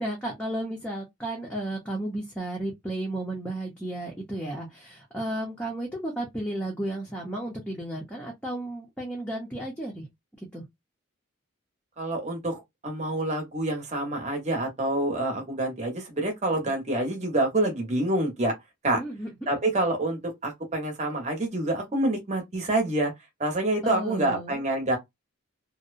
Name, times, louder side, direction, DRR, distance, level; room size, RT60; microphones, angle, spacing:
voice 1, 0.0-10.1 10.4-10.6 18.9-19.3 23.8-24.6, right 1 dB, 5° left, 0.6 m, -33 dB
voice 2, 12.0-18.5 18.8-19.0 19.5-23.1 23.4-25.0, right 1 dB, 35° right, 0.9 m, -27 dB
2.7 x 2.0 x 2.4 m
head